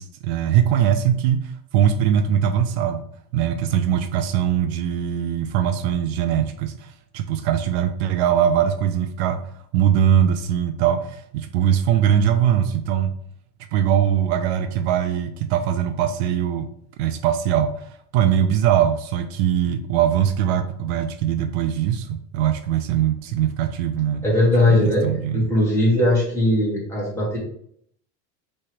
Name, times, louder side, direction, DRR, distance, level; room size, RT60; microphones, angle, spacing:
voice 1, 0.0-3.0 3.3-13.1 13.7-16.7 17.0-24.2 24.7-25.4, right 9 dB, 65° right, 8 dB, 0.5 m, -21 dB
voice 2, 24.2-25.1 25.3-27.4, left 1 dB, 10° left, -6 dB, 1.8 m, -19 dB
3.6 x 3.2 x 4.5 m, 0.66 s
supercardioid pair, 155°, 34 cm